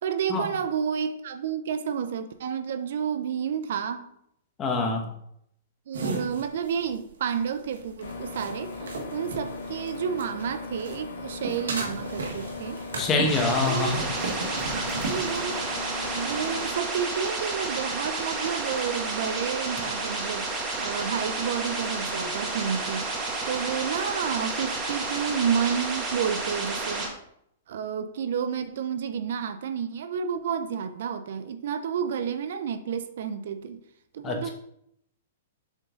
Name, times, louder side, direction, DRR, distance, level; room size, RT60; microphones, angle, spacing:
voice 1, 0.0-4.0 5.9-8.8 9.1-12.8 13.7-14.0 14.6-15.7 16.1-23.2 23.5-27.1 27.7-33.8 34.1-34.5, right 7 dB, 70° right, 10 dB, 0.6 m, -30 dB
voice 2, 4.6-5.1 13.0-14.0 34.2-34.5, left 3 dB, 25° left, 2 dB, 1.3 m, -25 dB
sound 1, 5.9-10.4 10.8-15.4, right 3 dB, 85° right, 1.5 m, -35 dB
sound 2, 8.0-16.7, left 3 dB, 85° left, 1.6 m, -38 dB
sound 3, 13.2-27.1, right 3 dB, 25° right, 1.8 m, -31 dB
7.3 x 3.7 x 3.9 m, 0.72 s
hypercardioid pair, 140°, 0 cm